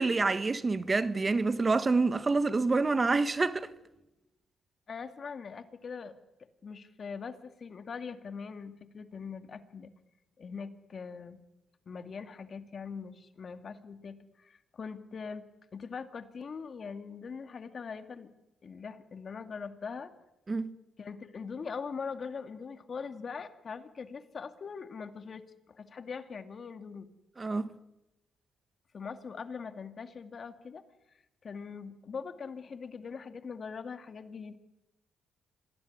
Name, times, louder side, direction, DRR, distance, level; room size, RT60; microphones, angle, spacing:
voice 1, 0.0-3.7 20.5-20.7 27.4-27.7, right 3 dB, 25° right, 1.4 m, -27 dB
voice 2, 4.9-6.1 6.6-9.9 10.4-11.4 11.9-15.5 15.7-18.3 18.6-20.1 21.0-27.1 28.9-30.8 31.4-34.6, left 5 dB, 45° left, 2.2 m, -42 dB
26.5 x 20.0 x 9.7 m
cardioid pair, 90°, 0 cm